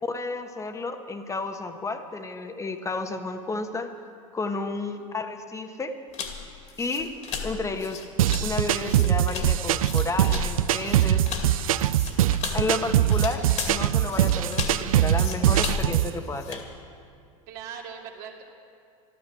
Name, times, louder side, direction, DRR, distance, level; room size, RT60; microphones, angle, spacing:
voice 1, 0.0-3.9 4.3-5.9 6.8-7.1 7.4-8.0 8.4-11.2 12.5-16.7, left 3 dB, 15° left, 7 dB, 1.3 m, -31 dB
sound 1, 6.1-16.7, left 6 dB, 40° left, 2.3 m, -35 dB
sound 2, 8.2-16.1, right 12 dB, 80° right, 0.5 m, -22 dB
voice 2, 17.5-18.4, right 7 dB, 50° right, 1 dB, 2.4 m, -41 dB
13.5 x 12.5 x 7.6 m, 2.4 s
hypercardioid pair, 90°, 18 cm